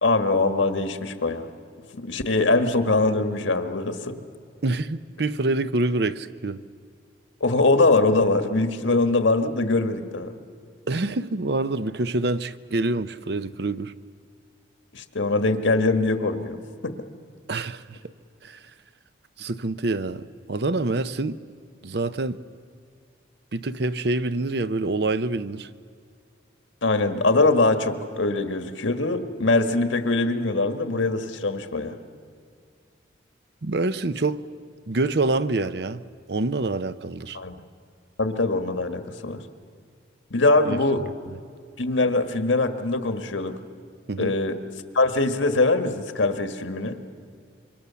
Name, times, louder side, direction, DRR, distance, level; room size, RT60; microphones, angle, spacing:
voice 1, 0.0-1.5 1.9-4.2 7.4-10.3 14.9-17.0 26.8-32.0 37.3-37.5 38.2-39.4 40.3-41.0 41.8-43.6 44.2-44.6 44.9-46.9, left 2 dB, 90° left, 1.6 m, -22 dB
voice 2, 4.6-6.6 10.9-13.9 17.5-18.0 18.4-18.6 19.4-21.4 21.8-22.4 23.5-25.7 33.6-34.4 34.9-36.0 36.3-37.4 40.7-40.8 44.1-44.3, right 2 dB, 60° right, 0.7 m, -26 dB
27.0 x 24.0 x 7.0 m
head